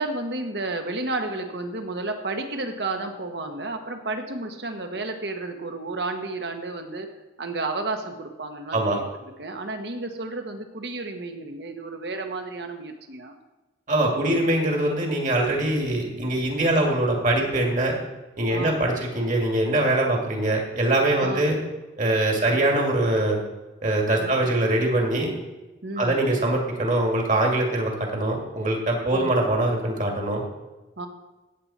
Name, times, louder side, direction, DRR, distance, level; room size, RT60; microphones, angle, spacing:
voice 1, 0.0-7.1 7.4-9.0 9.4-13.4 16.6-16.9 18.5-18.9 21.2-21.4 22.4-22.7 24.2-24.5 25.8-26.3 29.1-29.4 31.0-31.1, right 2 dB, 65° right, 5 dB, 1.3 m, -32 dB
voice 2, 13.9-18.0 18.4-21.6 22.0-23.4 23.8-25.3 26.0-30.4, right 1 dB, 45° right, 0 dB, 2.4 m, -23 dB
16.5 x 7.4 x 4.3 m, 1.1 s
head